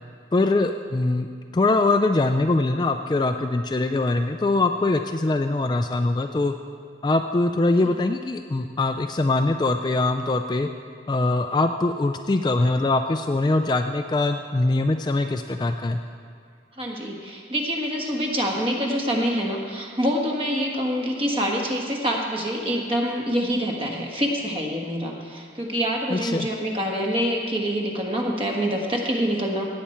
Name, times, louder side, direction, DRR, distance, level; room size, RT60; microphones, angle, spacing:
voice 1, 0.3-1.3 1.5-6.5 7.0-10.7 11.1-16.0 26.1-26.5, left 2 dB, 25° left, 6 dB, 0.3 m, -22 dB
voice 2, 16.8-29.6, equal, 30° right, 0 dB, 1.4 m, -26 dB
17.0 x 8.6 x 4.4 m, 2.4 s
head